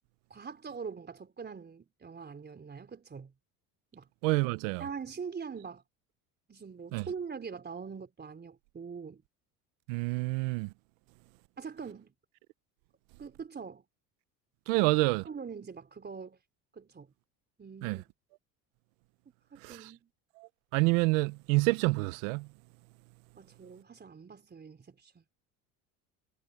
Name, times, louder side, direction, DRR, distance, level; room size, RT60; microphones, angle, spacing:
voice 1, 0.3-3.3 3.9-4.1 4.8-5.8 6.5-9.2 11.6-12.1 13.2-13.8 14.7-14.9 15.2-16.4 16.7-17.1 17.6-18.0 19.5-20.1 23.4-25.2, right 6 dB, 25° right, 3.9 m, -43 dB
voice 2, 4.2-4.8 6.9-7.1 9.9-10.7 14.7-15.2 17.8-18.0 19.6-19.9 20.4-22.5, right 24 dB, 85° right, 0.8 m, -28 dB
supercardioid pair, 105°, 37 cm